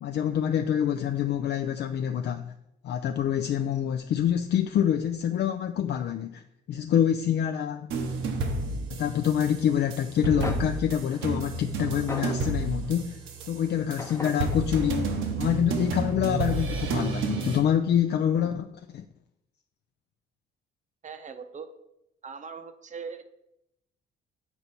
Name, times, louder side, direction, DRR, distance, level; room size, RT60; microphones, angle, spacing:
voice 1, 0.0-2.5 2.8-6.4 6.7-7.9 9.0-13.2 13.5-18.7 18.9-19.0, left 9 dB, 60° left, 0.4 m, -26 dB
sound 1, 7.9-17.6, right 3 dB, 85° right, 0.9 m, -31 dB
sound 2, 10.1-10.2 10.4-13.0 14.0-15.9, left 2 dB, 15° left, 0.8 m, -40 dB
voice 2, 21.0-21.7 22.2-23.2, right 5 dB, 40° right, 0.7 m, -40 dB
6.7 x 4.5 x 4.1 m
cardioid pair, 90°, 20 cm